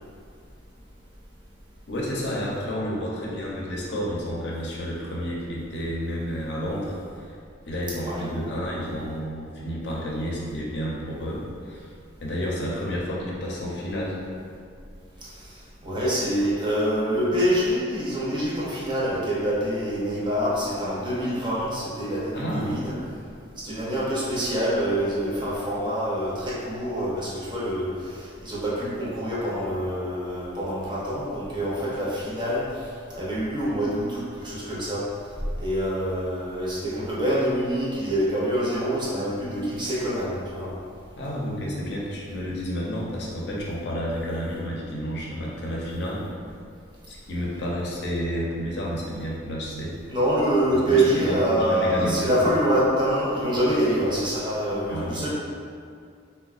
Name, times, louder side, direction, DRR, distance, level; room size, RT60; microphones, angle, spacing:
voice 1, 1.9-7.3 7.7-11.9 12.2-14.2 22.3-22.7 41.2-46.2 47.1-49.9 50.7-52.5 54.9-55.2, equal, 60° left, -4 dB, 0.6 m, -30 dB
voice 2, 15.2-22.9 23.6-35.1 35.6-40.7 50.1-55.3, right 1 dB, 25° right, -7 dB, 0.6 m, -26 dB
3.9 x 2.2 x 2.4 m, 2.3 s
head